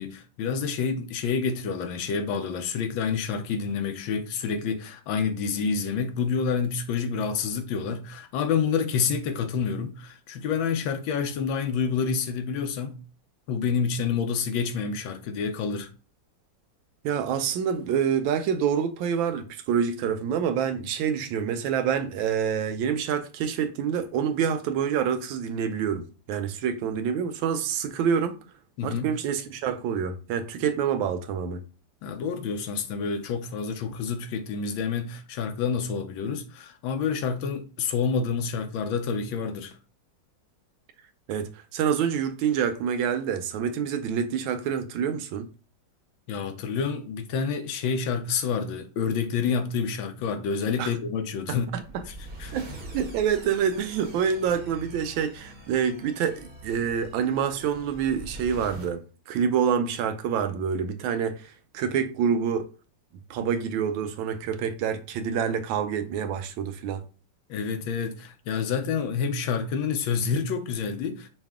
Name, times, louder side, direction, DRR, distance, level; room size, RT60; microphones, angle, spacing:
voice 1, 0.0-13.0 13.5-15.9 28.8-29.1 32.0-39.8 46.3-51.7 52.1-52.2 52.4-52.5 67.5-71.3, left 6 dB, 90° left, 1.4 m, -28 dB
voice 2, 17.0-28.4 28.8-31.6 41.3-45.5 50.8-50.9 51.5-52.0 52.5-59.0 59.3-62.7 63.3-67.0, right 7 dB, 90° right, 1.4 m, -27 dB
sound 1, 51.6-58.9, right 2 dB, 45° right, 0.6 m, -43 dB
5.6 x 2.3 x 3.6 m
omnidirectional pair, 2.1 m